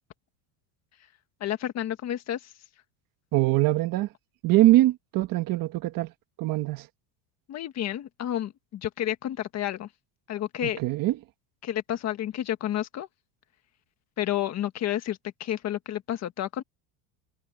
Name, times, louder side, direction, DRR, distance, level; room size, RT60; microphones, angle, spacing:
voice 1, 1.4-2.4 7.5-9.9 10.3-10.8 11.6-13.1 14.2-16.6, left 11 dB, 35° left, 1.5 m, -30 dB
voice 2, 3.3-4.1 4.4-6.1 6.4-6.9 10.6-11.2, right 16 dB, 45° right, 1.4 m, -23 dB
cardioid pair, 170°, 49 cm